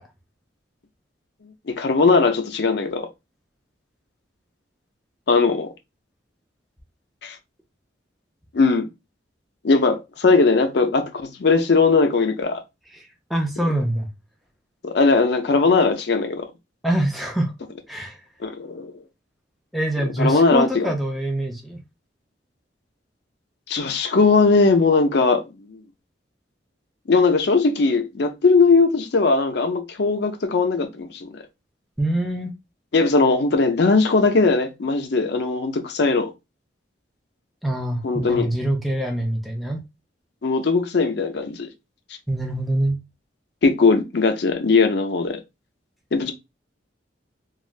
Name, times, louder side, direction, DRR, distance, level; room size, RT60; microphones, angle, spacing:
voice 1, 1.7-3.1 5.3-5.7 7.2-7.4 8.5-8.8 9.6-12.6 14.8-16.5 18.4-19.0 20.2-20.9 23.7-25.8 27.1-31.4 32.9-36.3 38.0-38.5 40.4-41.7 43.6-45.4 46.1-46.3, left 4 dB, 60° left, 0.5 m, -19 dB
voice 2, 12.9-14.1 16.8-17.5 17.9-18.2 19.7-21.8 32.0-32.5 37.6-39.8 42.3-43.0, right 1 dB, ahead, 0.4 m, -24 dB
3.2 x 2.4 x 2.4 m
head